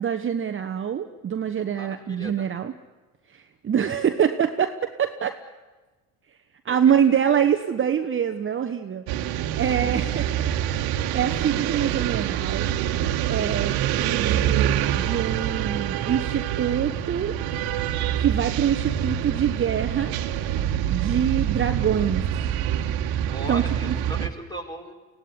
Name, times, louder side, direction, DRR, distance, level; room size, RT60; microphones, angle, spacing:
voice 1, 0.0-2.7 3.3-5.4 6.6-10.5 11.1-12.7 13.3-17.4 18.2-20.4 20.9-22.3 23.5-23.9, right 8 dB, 30° right, 7 dB, 1.1 m, -25 dB
voice 2, 1.7-2.5 6.7-7.0 9.7-10.0 23.3-24.9, right 1 dB, 10° left, 3 dB, 4.6 m, -38 dB
sound 1, 9.1-24.3, right 11 dB, 60° right, 1.5 m, -26 dB
23.0 x 17.0 x 9.8 m, 1.2 s
supercardioid pair, 90°, 41 cm